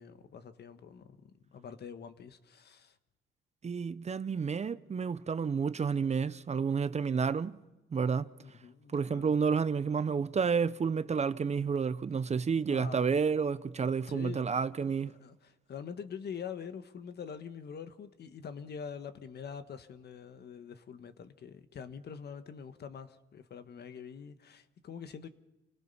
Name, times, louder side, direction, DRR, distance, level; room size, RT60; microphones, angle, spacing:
voice 1, 0.0-2.9 8.4-9.4 12.7-13.2 14.1-14.5 14.8-25.3, left 7 dB, 55° left, 1.5 m, -45 dB
voice 2, 3.6-7.6 7.9-8.3 8.9-15.1, right 6 dB, 35° right, 0.7 m, -30 dB
29.0 x 18.5 x 5.6 m
cardioid pair, 90°, 20 cm